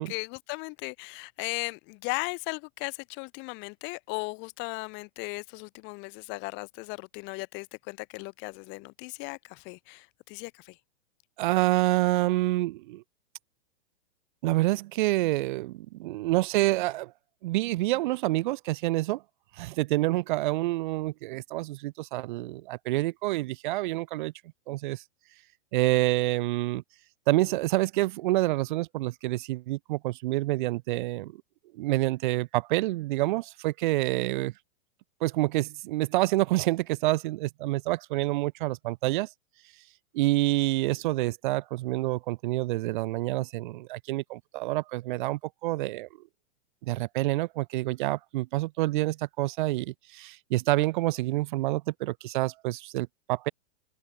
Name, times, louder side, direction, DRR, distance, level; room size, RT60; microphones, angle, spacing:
voice 1, 0.0-10.8, left 30 dB, 35° left, 1.9 m, -37 dB
voice 2, 11.4-13.0 14.4-17.1 17.4-19.2 19.6-24.3 24.7-25.0 25.7-26.8 27.3-31.3 31.7-34.5 35.2-39.3 40.1-46.1 46.8-53.5, right 18 dB, 50° right, 0.9 m, -27 dB
open air
hypercardioid pair, 150°, 33 cm